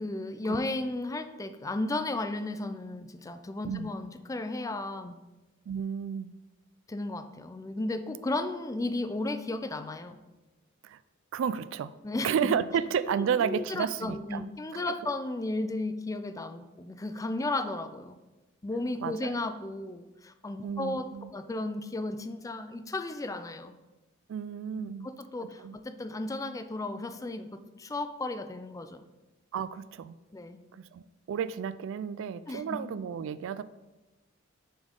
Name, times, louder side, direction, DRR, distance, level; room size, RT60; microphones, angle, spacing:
voice 1, 0.0-5.2 6.9-10.2 12.0-12.5 13.2-18.2 18.6-23.7 24.8-29.1 30.3-30.6 32.5-32.8, left 2 dB, 15° left, 10 dB, 0.4 m, -34 dB
voice 2, 5.7-6.3 10.8-11.0 11.3-12.0 12.2-14.4 14.7-14.9 19.0-19.3 20.6-21.3 24.3-25.1 25.4-25.7 29.5-30.1 30.7-33.6, right 7 dB, 65° right, 16 dB, 0.3 m, -32 dB
6.9 x 5.3 x 3.7 m, 1.1 s
head